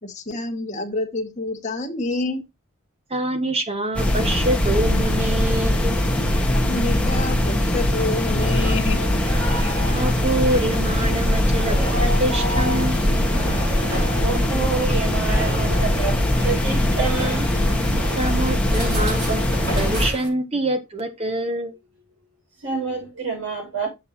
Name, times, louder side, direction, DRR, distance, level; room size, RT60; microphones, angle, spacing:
voice 1, 0.0-2.4 6.5-9.0 9.6-9.7, left 2 dB, 35° left, 1.9 m, -28 dB
voice 2, 3.1-6.0 9.9-13.0 18.1-19.4 19.8-21.7, right 1 dB, 30° right, 1.5 m, -25 dB
sound 1, 4.0-20.1, left 1 dB, 5° left, 1.7 m, -21 dB
sound 2, 8.3-20.3, right 1 dB, 50° right, 4.2 m, -33 dB
voice 3, 14.2-17.5 22.6-23.9, right 4 dB, 70° right, 6.2 m, -28 dB
7.4 x 6.8 x 4.2 m
head